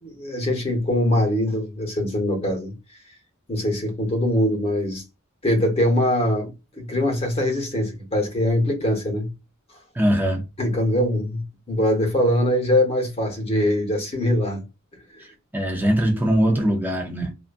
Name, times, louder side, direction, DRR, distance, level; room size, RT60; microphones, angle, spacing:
voice 1, 0.0-2.7 3.5-5.0 5.4-9.3 10.6-14.6 15.1-15.2, left 1 dB, 30° left, 0.9 m, -22 dB
voice 2, 9.9-10.4 15.5-17.3, equal, 10° right, 0.5 m, -21 dB
2.5 x 2.4 x 2.5 m
head